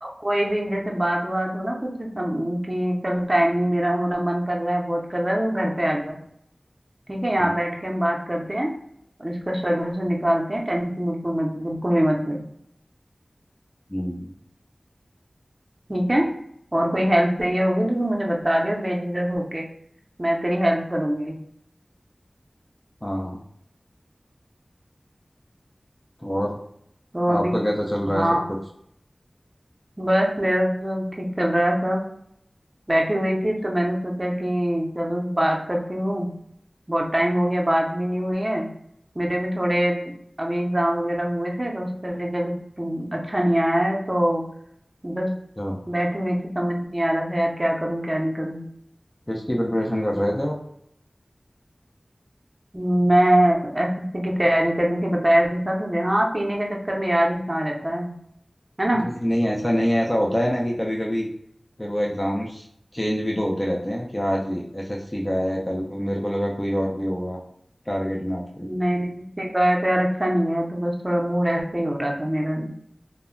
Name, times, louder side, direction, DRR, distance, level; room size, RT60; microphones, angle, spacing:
voice 1, 0.0-6.2 7.1-8.7 9.2-12.4 15.9-16.3 16.7-19.6 20.2-21.4 27.1-27.6 28.1-28.5 30.0-32.0 32.9-36.3 36.9-38.7 39.2-40.1 40.4-44.4 45.0-45.3 45.9-48.6 52.7-58.1 58.8-59.1 68.6-72.7, equal, 30° right, 0 dB, 0.6 m, -23 dB
voice 2, 13.9-14.3 23.0-23.4 26.2-26.6 27.3-28.2 45.6-45.8 49.3-50.5 58.9-61.3 61.8-62.6 62.9-67.4 67.9-68.7, equal, 20° left, -2 dB, 0.4 m, -25 dB
2.1 x 2.0 x 3.6 m, 0.71 s
wide cardioid pair, 50°, 0 cm